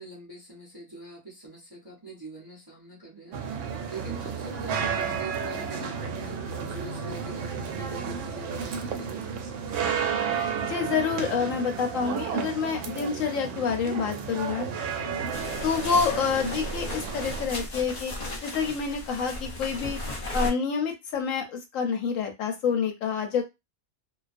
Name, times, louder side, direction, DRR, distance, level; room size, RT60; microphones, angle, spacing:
voice 1, 0.0-3.4 3.9-6.4 6.7-9.3, right 2 dB, 25° right, -4 dB, 0.5 m, -43 dB
sound 1, 3.3-17.5, right 6 dB, 65° right, 0.8 m, -32 dB
voice 2, 10.6-14.7 15.6-18.1 18.4-20.0 20.3-23.4, left 6 dB, 70° left, 3 dB, 0.9 m, -28 dB
sound 2, 15.3-20.5, left 1 dB, 50° left, 0.5 m, -35 dB
2.3 x 2.2 x 2.4 m, 0.22 s
omnidirectional pair, 1.5 m